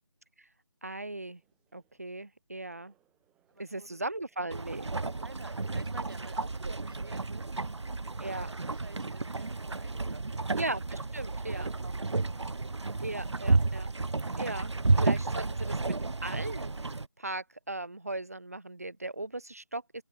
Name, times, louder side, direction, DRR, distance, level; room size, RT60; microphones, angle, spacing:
voice 1, 0.8-1.4 1.7-2.9 3.6-4.9 6.4-6.7 8.2-8.5 10.6-11.7 13.0-13.9 14.4-14.7 15.0-16.7 17.2-19.8, right 2 dB, 35° right, 0.3 m, -38 dB
sound 1, 1.1-6.2, right 14 dB, 5° right, 4.1 m, -74 dB
voice 2, 3.5-4.0 5.2-7.6 8.3-10.5 11.5-12.9, right 3 dB, 50° right, 1.7 m, -51 dB
sound 2, 4.5-17.1, right 3 dB, 75° right, 0.6 m, -31 dB
open air
figure-of-eight pair, 160°, 15 cm